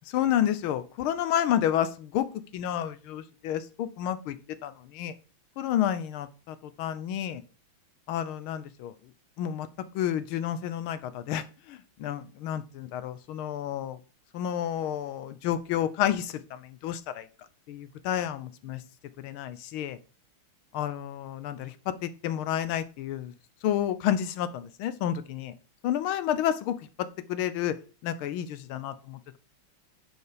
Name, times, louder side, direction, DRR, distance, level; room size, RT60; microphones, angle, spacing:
voice 1, 0.1-2.3 2.5-4.4 4.6-5.1 5.6-6.3 6.8-7.4 8.1-8.9 9.4-9.7 9.9-14.0 14.3-17.2 17.7-18.8 19.2-20.0 20.7-23.3 23.6-25.5 25.8-27.7 28.0-29.4, left 10 dB, 85° left, 13 dB, 1.6 m, -30 dB
9.7 x 4.5 x 5.0 m, 0.35 s
omnidirectional pair, 2.3 m